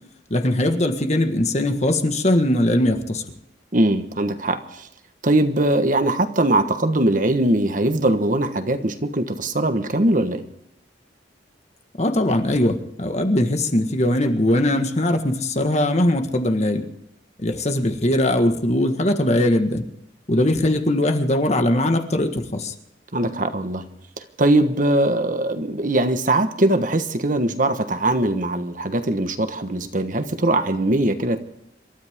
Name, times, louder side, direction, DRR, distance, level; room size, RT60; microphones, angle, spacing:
voice 1, 0.3-3.2 12.0-16.8 17.4-19.8 20.3-22.7, left 1 dB, 40° left, 7 dB, 1.6 m, -20 dB
voice 2, 3.7-4.9 5.2-10.4 23.1-23.8 24.2-31.4, right 1 dB, 50° right, 8 dB, 1.4 m, -21 dB
27.5 x 13.0 x 3.7 m, 0.76 s
head